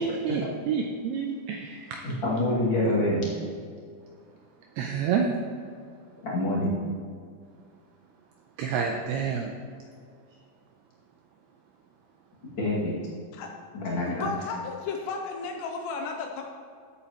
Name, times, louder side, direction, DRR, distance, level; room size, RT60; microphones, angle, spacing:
voice 1, 0.0-2.0 4.8-5.3 8.6-9.5, right 6 dB, 85° right, 3 dB, 2.3 m, -28 dB
voice 2, 2.0-3.3 6.2-6.8 12.5-12.9 13.7-14.3, left 1 dB, 40° left, -6 dB, 1.9 m, -26 dB
voice 3, 14.1-16.4, left 4 dB, 80° left, 2 dB, 2.8 m, -33 dB
15.0 x 8.3 x 3.0 m, 2.2 s
omnidirectional pair, 5.3 m